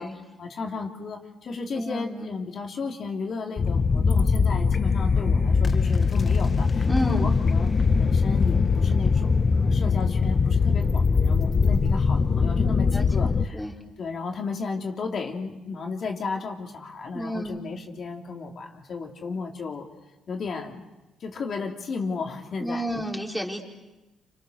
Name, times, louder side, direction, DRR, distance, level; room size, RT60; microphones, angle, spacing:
voice 1, 0.0-7.7 8.0-13.6 14.0-19.9 20.3-20.8 21.2-23.0, left 4 dB, 55° left, 1 dB, 3.2 m, -34 dB
voice 2, 1.8-2.3 6.8-7.3 12.9-13.7 17.1-17.6 22.6-23.6, equal, ahead, -1 dB, 4.7 m, -31 dB
sound 1, 3.6-13.5, left 5 dB, 35° left, 1.0 m, -21 dB
29.0 x 28.0 x 6.7 m, 1.1 s
cardioid pair, 90°, 0 cm